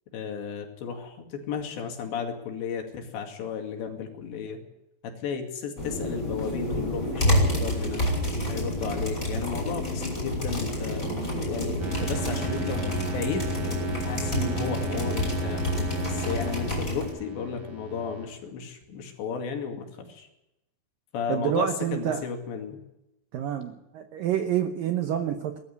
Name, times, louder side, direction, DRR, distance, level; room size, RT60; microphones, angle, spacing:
voice 1, 0.1-4.6 5.0-8.0 8.5-13.5 14.0-15.6 16.1-20.3 21.1-22.8, left 6 dB, 70° left, 4 dB, 4.5 m, -34 dB
sound 1, 5.8-17.1, left 1 dB, 15° left, 5.8 m, -29 dB
sound 2, 11.8-18.3, right 1 dB, 50° right, 5.3 m, -34 dB
voice 2, 14.3-15.1 21.3-22.3 23.3-25.6, right 9 dB, 75° right, 7 dB, 2.0 m, -28 dB
19.0 x 14.0 x 9.8 m, 0.93 s
omnidirectional pair, 5.3 m